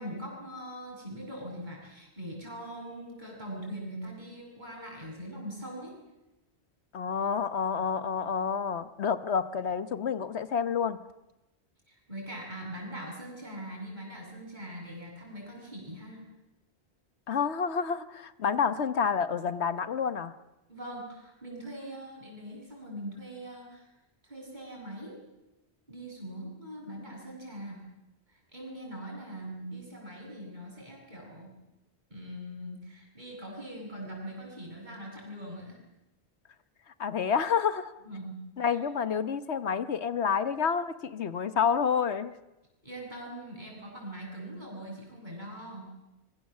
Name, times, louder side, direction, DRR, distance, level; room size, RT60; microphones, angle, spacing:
voice 1, 0.0-5.9 11.9-16.2 20.7-23.9 24.2-25.2 25.9-27.8 28.3-31.5 32.1-35.8 38.0-38.4 38.7-38.8 42.8-45.9, right 1 dB, 45° right, -1 dB, 8.2 m, -42 dB
voice 2, 6.9-11.0 17.3-20.3 37.0-37.9 38.6-42.4, left 6 dB, 80° left, 12 dB, 1.4 m, -29 dB
25.0 x 23.5 x 7.6 m, 0.98 s
omnidirectional pair, 1.1 m